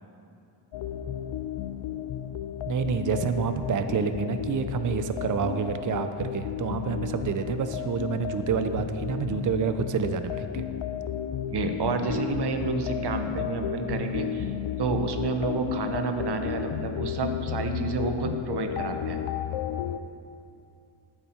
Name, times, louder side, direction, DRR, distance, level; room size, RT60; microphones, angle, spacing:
sound 1, 0.7-20.0, left 10 dB, 85° left, 0.6 m, -33 dB
voice 1, 2.7-10.6, right 6 dB, 40° right, 9 dB, 0.6 m, -28 dB
voice 2, 11.5-14.5 14.8-19.2, right 4 dB, 60° right, 6 dB, 1.0 m, -30 dB
11.5 x 8.9 x 4.4 m, 2.6 s
wide cardioid pair, 120°, 46 cm